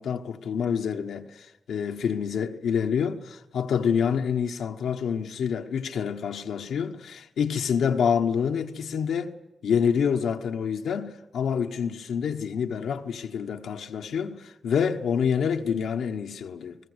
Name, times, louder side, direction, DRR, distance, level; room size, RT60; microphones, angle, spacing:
voice 1, 0.0-9.3 9.6-16.8, left 7 dB, 90° left, 1.0 m, -27 dB
26.5 x 19.5 x 8.0 m
cardioid pair, 50°, 0 cm